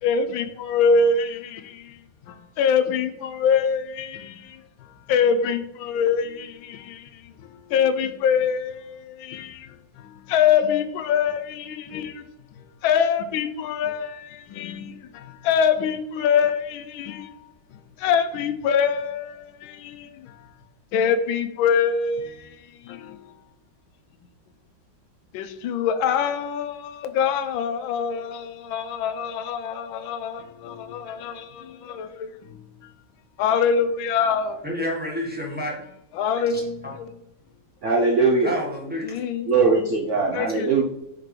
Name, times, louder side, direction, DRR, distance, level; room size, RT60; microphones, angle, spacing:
voice 1, 0.0-2.0 2.3-12.5 12.8-17.3 17.7-20.5 20.9-23.3 25.3-32.9 33.4-34.6 36.1-37.1 39.0-39.6 40.3-40.7, left 6 dB, 90° left, 1.4 m, -25 dB
voice 2, 34.6-35.7 36.5-36.9 38.4-39.1, equal, 5° right, 1.3 m, -29 dB
voice 3, 37.8-38.5 39.4-40.8, right 4 dB, 65° right, 0.7 m, -20 dB
5.7 x 5.2 x 3.2 m
omnidirectional pair, 2.1 m